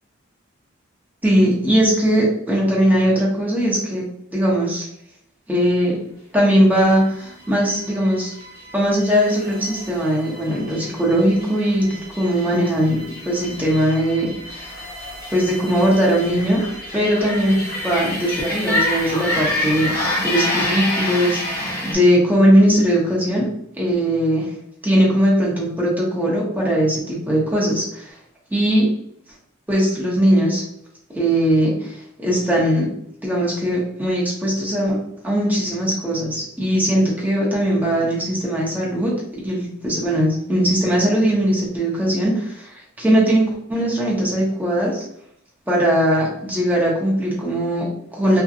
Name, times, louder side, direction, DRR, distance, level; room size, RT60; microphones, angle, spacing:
voice 1, 1.2-4.0 4.3-4.9 5.5-6.0 6.3-8.3 8.7-14.8 15.3-16.6 16.9-23.5 23.8-24.5 24.8-28.2 28.5-28.9 29.7-30.6 31.1-32.9 33.2-35.0 35.2-45.0 45.7-48.4, equal, 10° right, -5 dB, 0.7 m, -19 dB
sound 1, 6.9-22.0, left 1 dB, 55° left, 0.9 m, -28 dB
2.7 x 2.1 x 2.4 m, 0.72 s
head